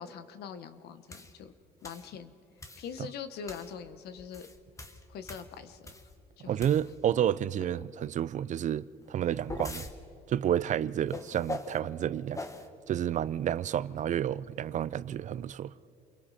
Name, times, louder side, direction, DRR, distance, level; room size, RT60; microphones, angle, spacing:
voice 1, 0.0-1.5 1.8-2.3 2.8-4.5 5.1-5.9 6.4-6.7 7.5-7.9, left 7 dB, 70° left, 1.2 m, -43 dB
sound 1, 1.1-1.3 1.8-2.1 2.6-2.9 3.5-3.7 4.2-6.2 6.6-7.1 9.0-9.9 11.1-11.8 12.3-12.7, left 2 dB, 20° left, 1.4 m, -41 dB
voice 2, 6.4-9.8 10.3-12.4 12.9-15.7, right 10 dB, 45° right, 0.5 m, -30 dB
29.0 x 22.5 x 4.2 m
cardioid pair, 110°, 17 cm